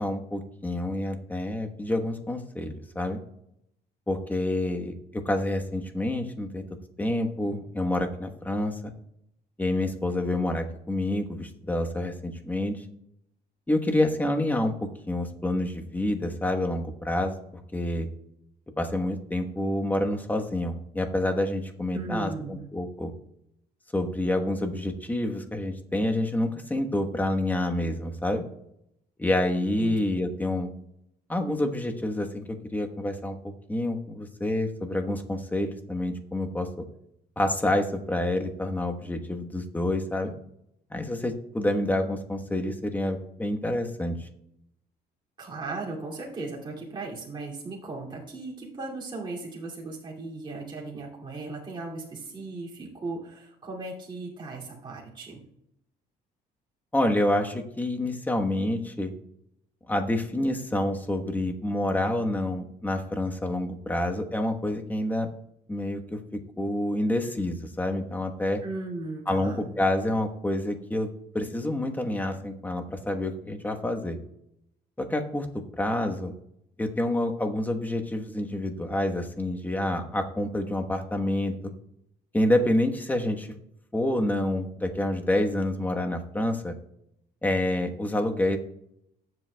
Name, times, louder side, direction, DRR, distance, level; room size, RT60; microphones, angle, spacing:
voice 1, 0.0-3.2 4.1-6.6 7.0-8.9 9.6-12.8 13.7-17.3 17.7-18.1 18.8-23.1 23.9-28.4 29.2-30.7 31.3-36.8 37.4-40.3 40.9-44.3 56.9-59.1 59.9-65.3 65.7-66.2 66.6-68.6 69.3-71.1 71.3-74.2 75.0-76.3 76.8-81.7 82.3-83.5 83.9-86.7 87.4-88.6, left 1 dB, 10° left, 4 dB, 1.1 m, -28 dB
voice 2, 21.9-22.6 29.8-30.0 45.4-55.4 68.6-69.6, right 3 dB, 30° right, -4 dB, 2.5 m, -37 dB
18.5 x 7.8 x 2.3 m, 0.79 s
cardioid pair, 110°, 17 cm